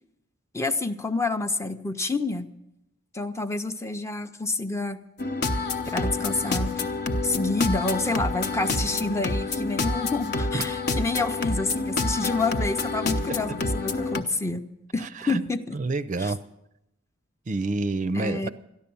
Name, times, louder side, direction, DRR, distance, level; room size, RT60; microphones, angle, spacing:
voice 1, 0.5-2.5 3.1-5.0 5.9-6.7 7.2-14.6 14.9-15.8 16.2-16.3 18.1-18.5, left 3 dB, 15° left, 8 dB, 0.6 m, -28 dB
sound 1, 5.2-14.2, left 3 dB, 55° left, 0.9 m, -28 dB
voice 2, 15.0-15.4 15.7-16.4 17.5-18.5, right 3 dB, 40° right, 13 dB, 0.5 m, -28 dB
13.5 x 11.0 x 6.9 m, 0.86 s
head